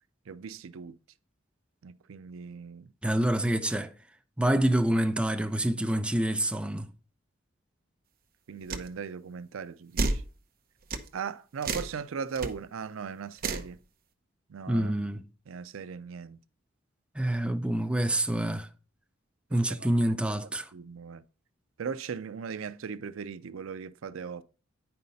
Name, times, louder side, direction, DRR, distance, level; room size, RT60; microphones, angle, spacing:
voice 1, 0.3-1.0 1.8-2.9 8.5-10.2 11.1-13.8 14.5-14.9 15.5-16.4 19.5-20.0 20.4-21.2 21.8-24.4, right 6 dB, 85° right, 0.4 m, -38 dB
voice 2, 3.0-3.9 4.4-6.9 14.7-15.2 17.2-18.7 19.5-20.7, right 1 dB, 5° right, 0.5 m, -27 dB
sound 1, 8.7-8.9 10.0-10.3 10.9-11.1 11.6-11.9 12.4-12.5 13.4-13.7, right 3 dB, 45° right, 0.8 m, -30 dB
9.3 x 5.5 x 4.0 m
head